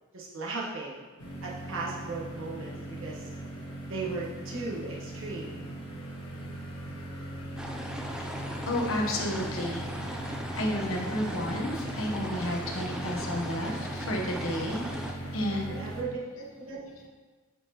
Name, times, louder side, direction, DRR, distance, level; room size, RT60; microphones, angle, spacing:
voice 1, 0.1-1.0 1.4-2.7 3.0-3.3 3.9-5.6 15.7-16.2 16.6-16.8, right 3 dB, 65° right, -4 dB, 1.3 m, -36 dB
sound 1, 1.2-16.0, right 1 dB, 85° left, 1.2 m, -39 dB
sound 2, 7.6-15.1, equal, 5° right, 0.3 m, -39 dB
voice 2, 8.1-15.9 16.3-16.4 16.8-17.1, left 1 dB, 70° left, 0 dB, 1.0 m, -32 dB
8.4 x 4.5 x 2.9 m, 1.3 s
head